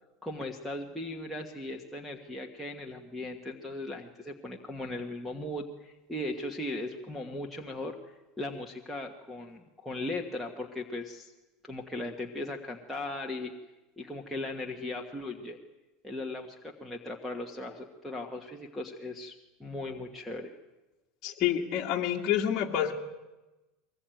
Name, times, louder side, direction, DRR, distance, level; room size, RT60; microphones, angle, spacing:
voice 1, 0.2-11.3 11.6-13.5 14.0-15.6 16.0-19.3 19.6-20.5, left 2 dB, ahead, -2 dB, 1.4 m, -38 dB
voice 2, 21.2-22.9, left 10 dB, 30° left, -1 dB, 2.1 m, -28 dB
23.0 x 20.0 x 9.2 m, 1.1 s
supercardioid pair, 165°, 0 cm